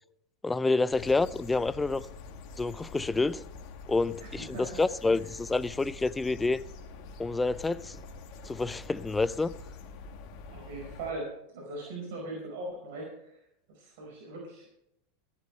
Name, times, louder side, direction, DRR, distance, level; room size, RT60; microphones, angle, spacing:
voice 1, 0.4-2.1 2.6-3.4 3.9-6.6 7.2-8.0 8.5-9.5, left 3 dB, 15° left, 0.6 m, -28 dB
sound 1, 0.9-11.1, left 3 dB, 55° left, 2.1 m, -46 dB
voice 2, 4.2-5.3 10.5-13.4 13.7-14.7, right 2 dB, 65° right, 4.9 m, -40 dB
16.0 x 12.5 x 3.3 m
hypercardioid pair, 90°, 0 cm